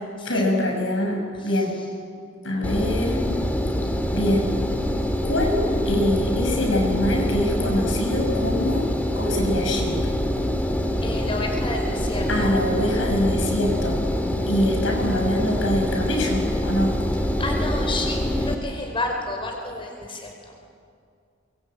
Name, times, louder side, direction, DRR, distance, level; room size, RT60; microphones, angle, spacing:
voice 1, 0.2-1.8 2.4-3.2 4.1-4.6 5.2-8.9 9.1-10.0 12.3-14.0 14.5-17.0, left 1 dB, 80° left, 1 dB, 6.1 m, -24 dB
Engine, 2.6-18.5, equal, 10° left, 2.4 m, -25 dB
voice 2, 11.0-12.5 17.4-20.5, left 2 dB, 25° left, 2 dB, 5.0 m, -30 dB
23.5 x 23.0 x 8.7 m, 2.3 s
head